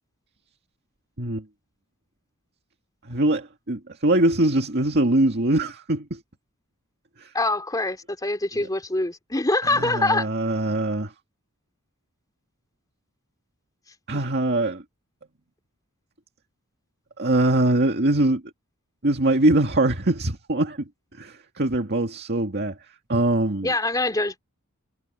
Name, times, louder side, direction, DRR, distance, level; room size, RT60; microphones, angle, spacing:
voice 1, 3.1-6.2 7.2-7.3 8.6-8.7 9.7-11.1 14.1-14.8 17.2-18.4 19.0-22.8 23.1-23.7, right 1 dB, 50° right, 2.1 m, -22 dB
voice 2, 7.3-10.8 14.1-14.2 23.6-24.4, left 2 dB, 15° left, 3.1 m, -25 dB
head